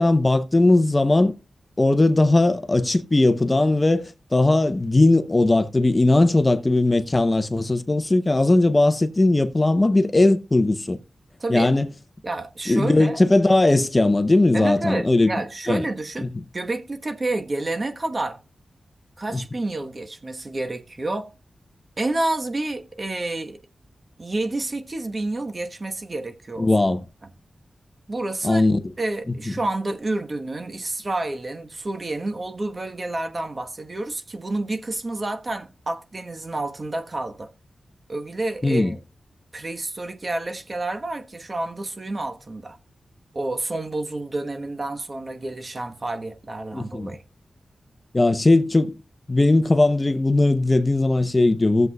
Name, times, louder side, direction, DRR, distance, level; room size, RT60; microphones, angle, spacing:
voice 1, 0.0-1.3 1.8-11.0 11.5-11.9 12.7-15.3 15.7-15.8 16.2-16.3 19.3-19.4 26.6-27.0 28.4-28.8 29.5-29.6 38.6-39.0 46.7-47.1 48.1-49.0 49.3-51.9, left 2 dB, 25° left, 0.8 m, -19 dB
voice 2, 11.4-11.7 12.2-13.2 14.5-18.4 19.2-21.3 22.0-23.6 24.2-26.7 28.1-37.5 38.1-39.0 39.5-42.8 43.3-47.2, right 2 dB, 40° right, 1.2 m, -29 dB
15.5 x 7.8 x 2.3 m
cardioid pair, 65°, 0 cm